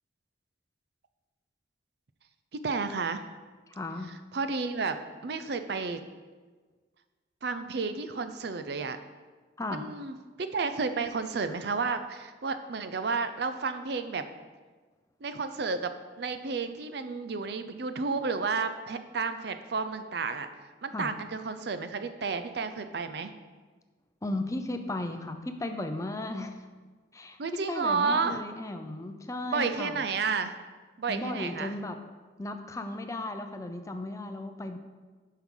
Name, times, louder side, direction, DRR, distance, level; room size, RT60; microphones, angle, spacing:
voice 1, 2.6-3.2 4.3-5.0 5.2-6.0 7.4-9.0 9.7-14.2 15.2-15.9 16.2-20.5 20.8-23.3 27.4-28.4 29.5-30.5 31.0-31.8, right 4 dB, 60° right, 9 dB, 0.5 m, -31 dB
voice 2, 3.7-4.1 9.6-9.9 20.9-21.1 24.2-26.5 27.1-30.0 31.1-32.0 32.4-34.8, left 2 dB, 15° left, 7 dB, 0.5 m, -35 dB
10.5 x 5.6 x 3.8 m, 1.4 s
head